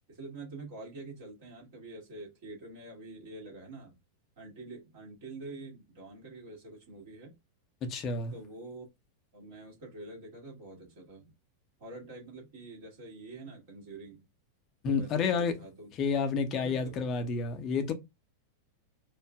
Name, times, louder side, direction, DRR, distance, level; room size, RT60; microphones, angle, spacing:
voice 1, 0.1-4.0 4.4-7.3 8.3-8.9 9.3-11.3 11.8-14.2 14.9-15.9 16.5-17.0, right 2 dB, 50° right, 2.4 m, -46 dB
voice 2, 7.8-8.3 14.8-15.6 16.0-17.9, left 5 dB, 35° left, 0.9 m, -30 dB
4.8 x 2.4 x 2.4 m
figure-of-eight pair, 90°, 0 cm